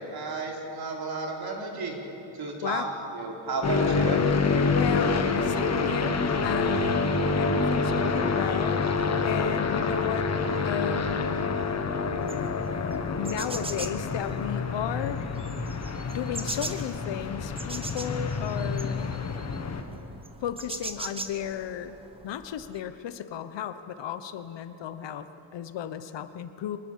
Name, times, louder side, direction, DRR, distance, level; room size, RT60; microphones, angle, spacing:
voice 1, 0.1-2.0 2.3-2.9 3.1-4.2, right 3 dB, 50° right, 0 dB, 3.9 m, -32 dB
sound 1, 3.6-19.8, left 4 dB, 35° left, 1.5 m, -27 dB
voice 2, 4.7-10.3 10.6-11.5 13.2-15.3 16.1-19.1 20.4-22.0 22.2-26.8, left 9 dB, 65° left, 11 dB, 1.1 m, -34 dB
sound 2, 12.2-22.8, right 2 dB, 10° right, 1.0 m, -41 dB
25.0 x 20.5 x 7.5 m, 2.9 s
cardioid pair, 165°, 46 cm